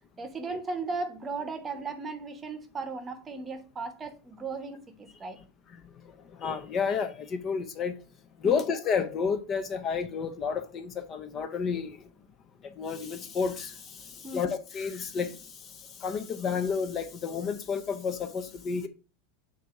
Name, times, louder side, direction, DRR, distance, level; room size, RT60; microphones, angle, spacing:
voice 1, 0.2-5.4 8.4-8.6 14.2-14.5, right 3 dB, 20° right, 0.9 m, -36 dB
voice 2, 5.7-8.0 8.4-12.1 12.6-18.9, left 6 dB, 30° left, 0.7 m, -31 dB
7.4 x 2.7 x 5.8 m
supercardioid pair, 145°, 0 cm